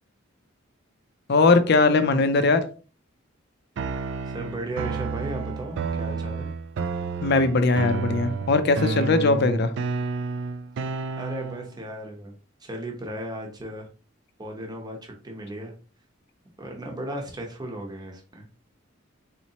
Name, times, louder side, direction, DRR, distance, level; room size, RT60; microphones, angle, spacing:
voice 1, 1.3-2.6 7.2-9.7, left 3 dB, 55° left, 10 dB, 0.5 m, -20 dB
sound 1, 3.8-11.8, right 4 dB, 60° right, 0.3 m, -31 dB
voice 2, 4.3-6.5 11.2-12.3 12.6-13.9 14.4-15.7 16.6-18.5, right 1 dB, 20° right, 1 dB, 0.8 m, -35 dB
4.0 x 3.0 x 2.8 m, 0.38 s
head